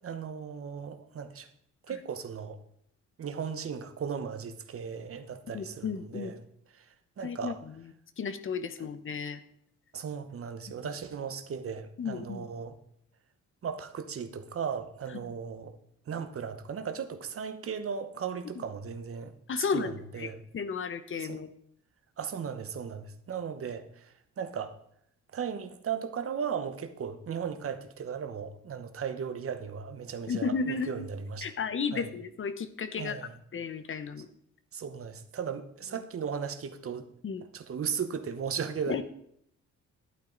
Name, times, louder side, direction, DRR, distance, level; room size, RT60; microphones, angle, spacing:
voice 1, 0.0-1.5 1.9-2.6 3.2-6.4 7.2-7.6 9.9-12.7 13.6-15.8 16.1-20.4 21.2-21.4 22.2-23.8 24.4-24.7 25.3-31.5 31.9-32.1 33.0-33.3 34.7-37.0 37.5-39.0, right 7 dB, 50° right, 9 dB, 1.0 m, -36 dB
voice 2, 5.5-6.3 7.2-7.8 8.2-9.4 12.0-12.5 19.5-21.5 30.3-31.0 31.4-34.3 35.9-36.0 37.2-37.4 38.9-39.0, left 5 dB, 45° left, 12 dB, 0.9 m, -34 dB
11.0 x 8.8 x 3.9 m, 0.70 s
cardioid pair, 90°, 30 cm